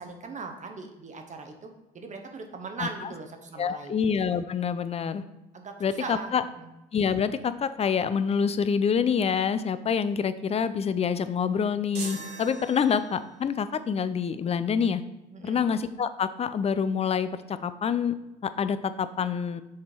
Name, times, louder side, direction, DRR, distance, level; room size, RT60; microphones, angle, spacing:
voice 1, 0.0-3.9 5.5-6.7 15.3-15.7, right 3 dB, 35° right, 4 dB, 0.9 m, -39 dB
voice 2, 3.6-5.2 5.8-6.4 6.9-15.0 15.4-18.1 18.4-19.6, left 6 dB, 30° left, 13 dB, 0.4 m, -26 dB
sound 1, 11.9-13.4, right 3 dB, 55° right, 1.4 m, -40 dB
6.5 x 3.6 x 4.4 m, 1.0 s
supercardioid pair, 80°, 21 cm